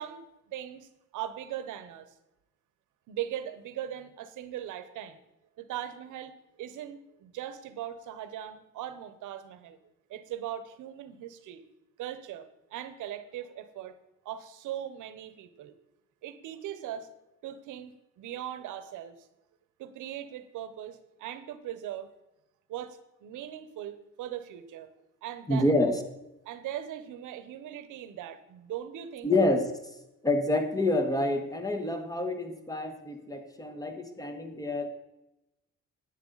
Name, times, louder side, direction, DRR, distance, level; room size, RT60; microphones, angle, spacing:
voice 1, 0.0-2.1 3.1-5.2 5.6-6.3 6.6-9.8 10.1-11.6 12.0-13.9 14.2-15.7 16.2-17.1 17.4-17.9 18.2-19.3 19.8-22.1 22.7-24.9 25.2-25.7 26.4-29.3, right 11 dB, 85° right, 12 dB, 0.9 m, -39 dB
voice 2, 25.5-26.0 29.2-29.9 30.2-34.9, left 2 dB, 10° left, 7 dB, 1.3 m, -27 dB
10.5 x 9.0 x 4.0 m, 0.94 s
cardioid pair, 90°, 30 cm